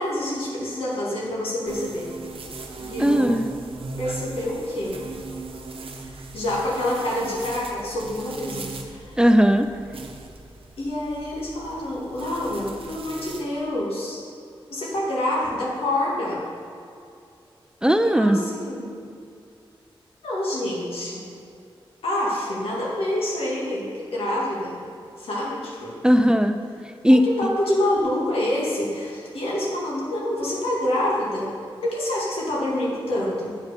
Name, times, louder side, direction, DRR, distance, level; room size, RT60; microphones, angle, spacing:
voice 1, 0.0-2.1 2.8-3.4 4.0-5.1 6.0-9.2 10.8-14.3 14.7-16.4 18.0-19.1 20.2-21.2 22.0-24.8 25.2-26.0 27.1-31.5 31.8-33.6, left 1 dB, 85° left, -4 dB, 2.1 m, -27 dB
sound 1, 1.7-13.4, right 3 dB, 70° right, 0.9 m, -38 dB
voice 2, 3.0-3.4 9.2-9.7 17.8-18.4 26.0-26.6 27.0-27.2, equal, 10° right, 7 dB, 0.5 m, -17 dB
7.7 x 5.1 x 6.8 m, 2.5 s
cardioid pair, 50°, 10 cm